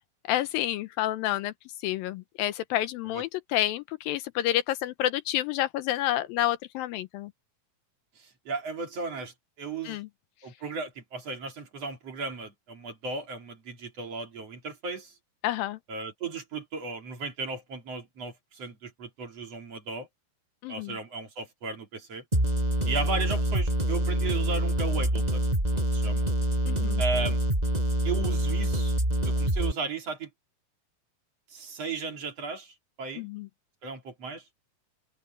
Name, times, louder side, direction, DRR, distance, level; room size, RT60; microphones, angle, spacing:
voice 1, 0.3-1.5 1.8-7.3 9.9-10.1 15.4-15.8 20.6-21.0 26.7-27.0 33.2-33.5, left 14 dB, 80° left, 2.4 m, -29 dB
voice 2, 8.2-10.0 10.4-15.2 15.9-20.1 20.7-22.2 22.9-26.3 27.0-27.4 28.0-29.0 29.2-30.3 31.5-33.3 33.8-34.5, right 4 dB, 45° right, 3.7 m, -35 dB
sound 1, 22.3-29.7, right 1 dB, 10° right, 5.9 m, -26 dB
omnidirectional pair, 4.4 m